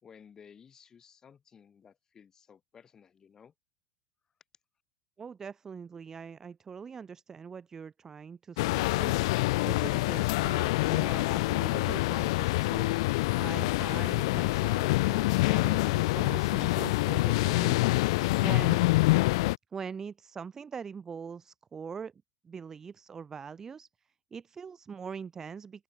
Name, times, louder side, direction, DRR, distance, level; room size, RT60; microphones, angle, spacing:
voice 1, 0.0-3.5, left 7 dB, 15° left, 5.1 m, -56 dB
voice 2, 5.2-9.1 9.6-18.0 18.4-18.8 19.7-22.1 22.4-23.9 24.3-25.8, right 6 dB, 15° right, 1.3 m, -42 dB
sound 1, 8.6-19.6, left 21 dB, 60° left, 0.4 m, -26 dB
open air
supercardioid pair, 165°, 3 cm